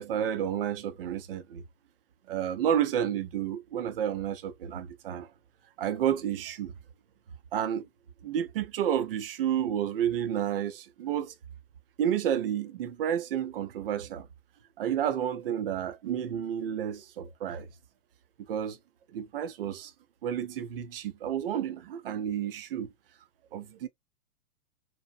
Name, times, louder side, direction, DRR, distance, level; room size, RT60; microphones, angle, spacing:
voice 1, 0.0-1.6 2.3-5.3 5.8-6.7 7.5-7.9 8.2-11.3 12.0-14.3 14.8-17.7 18.5-18.8 19.1-19.9 20.2-22.9 23.5-23.9, right 9 dB, 40° right, 0.4 m, -30 dB
2.7 x 2.1 x 2.4 m
hypercardioid pair, 125°, 46 cm